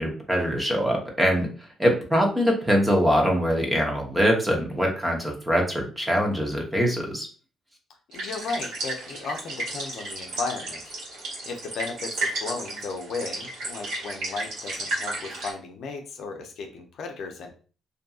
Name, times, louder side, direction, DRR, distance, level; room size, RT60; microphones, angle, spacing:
voice 1, 0.0-1.5 1.8-7.3, equal, 10° right, 1 dB, 0.8 m, -23 dB
voice 2, 8.1-10.8 11.4-17.5, left 4 dB, 70° left, 4 dB, 0.5 m, -35 dB
sound 1, 8.1-15.5, right 2 dB, 85° right, 1.4 m, -33 dB
2.6 x 2.6 x 2.3 m, 0.38 s
cardioid pair, 90°, 0 cm